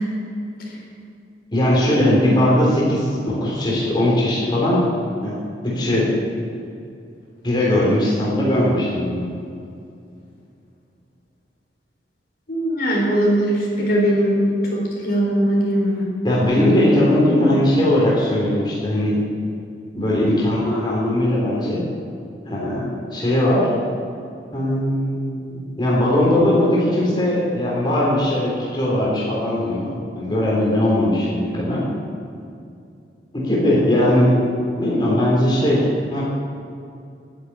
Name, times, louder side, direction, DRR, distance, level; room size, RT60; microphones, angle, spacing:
voice 1, 1.5-4.9 5.2-5.3 5.6-6.1 7.4-9.3 16.2-19.2 19.9-21.8 22.4-23.7 24.5-31.8 33.3-34.4 34.8-36.2, left 1 dB, 25° left, -6 dB, 3.3 m, -19 dB
voice 2, 12.5-14.4 14.7-16.0, right 1 dB, 55° left, -4 dB, 4.0 m, -20 dB
12.0 x 10.0 x 8.7 m, 2.5 s
head